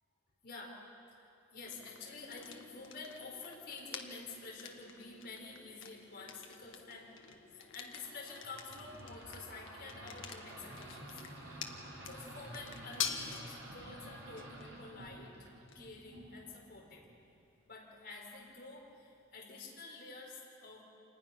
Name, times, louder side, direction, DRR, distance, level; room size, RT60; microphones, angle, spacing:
voice 1, 0.4-0.8 1.1-15.5 15.7-17.1 17.7-20.8, left 3 dB, 50° left, -3 dB, 4.6 m, -49 dB
sound 1, 1.6-19.4, left 7 dB, 65° left, 1.5 m, -48 dB
sound 2, 7.9-17.3, right 1 dB, 70° right, 4.0 m, -51 dB
27.0 x 20.0 x 5.9 m, 2.6 s
head